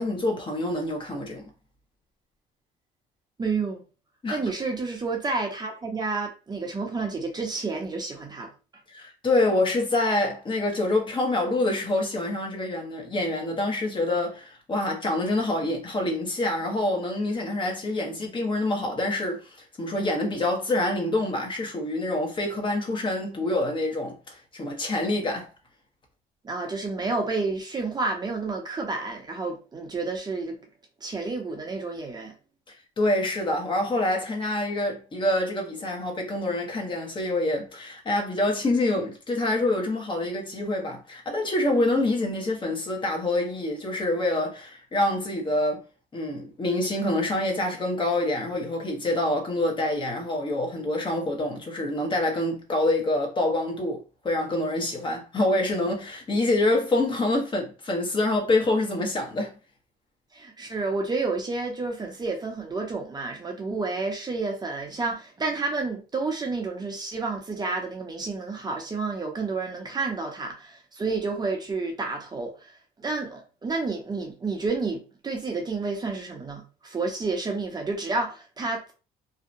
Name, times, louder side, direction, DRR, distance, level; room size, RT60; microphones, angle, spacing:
voice 1, 0.0-1.5 4.2-4.4 8.9-25.5 33.0-45.8 46.1-59.6, left 2 dB, 30° left, 0.8 m, -26 dB
voice 2, 3.4-3.8 4.3-8.5 26.4-30.6 31.0-32.3 60.3-72.7 73.0-78.9, right 3 dB, 25° right, 0.7 m, -30 dB
2.7 x 2.1 x 2.5 m
cardioid pair, 110°, 17 cm